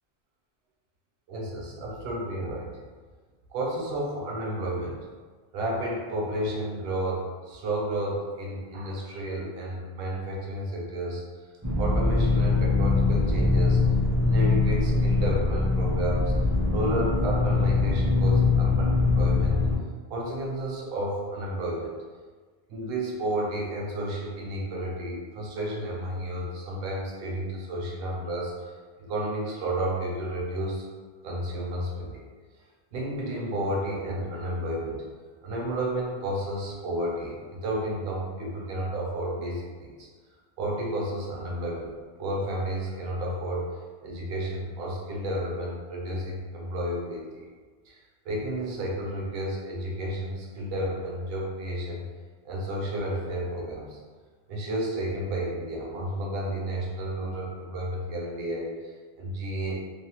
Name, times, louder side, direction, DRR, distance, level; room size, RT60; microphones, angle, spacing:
voice 1, 1.3-2.8 3.5-5.1 5.5-11.2 11.8-13.8 14.2-16.3 16.7-19.6 20.1-22.0 22.7-30.9 31.2-32.2 32.9-35.0 35.4-40.1 40.6-47.5 47.9-48.0 48.2-52.0 52.4-54.0 54.5-59.8, right 1 dB, 65° right, -3 dB, 0.8 m, -32 dB
sound 1, 11.6-19.8, left 3 dB, 25° right, 0.4 m, -23 dB
2.6 x 2.0 x 2.8 m, 1.5 s
omnidirectional pair, 1.1 m